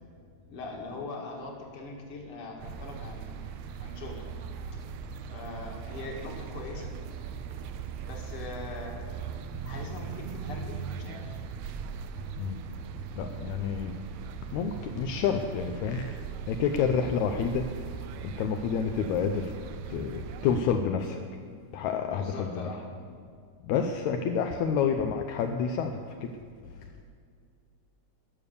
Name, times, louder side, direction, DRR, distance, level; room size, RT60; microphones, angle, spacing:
voice 1, 0.5-4.2 4.7-4.8 5.2-6.9 8.1-9.1 9.6-11.4 22.1-22.8, left 3 dB, 50° left, 1 dB, 2.5 m, -41 dB
sound 1, 2.6-20.6, right 6 dB, 75° right, 1.6 m, -39 dB
voice 2, 12.4-14.0 14.5-17.9 18.2-19.5 19.9-21.2 21.7-22.7 23.6-26.4 26.7-26.9, left 6 dB, 80° left, 5 dB, 1.9 m, -29 dB
20.0 x 6.9 x 6.8 m, 2.2 s
omnidirectional pair, 3.5 m